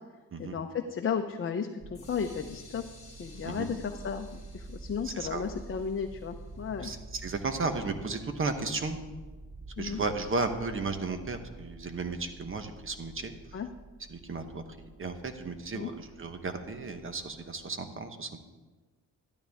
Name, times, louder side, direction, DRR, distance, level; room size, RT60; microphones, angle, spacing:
voice 1, 0.4-2.8 3.2-6.9 9.8-10.0 13.5-13.7 15.7-15.9, left 6 dB, 40° left, 4 dB, 0.7 m, -34 dB
sound 1, 1.8-17.7, right 2 dB, 20° right, 0.7 m, -48 dB
sound 2, 1.9-7.8, left 3 dB, 20° left, 2.3 m, -57 dB
voice 2, 5.0-5.4 6.8-9.0 9.8-13.3 14.1-18.4, right 3 dB, 40° right, 8 dB, 1.0 m, -34 dB
12.5 x 12.0 x 3.5 m, 1.3 s
cardioid pair, 95°, 33 cm